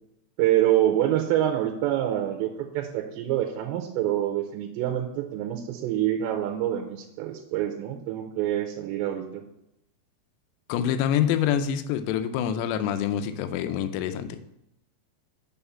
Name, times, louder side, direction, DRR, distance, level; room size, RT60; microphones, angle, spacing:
voice 1, 0.4-9.4, right 12 dB, 90° right, 4 dB, 2.8 m, -26 dB
voice 2, 10.7-14.4, left 9 dB, 85° left, 9 dB, 2.8 m, -26 dB
6.5 x 5.7 x 5.5 m, 0.82 s
omnidirectional pair, 5.0 m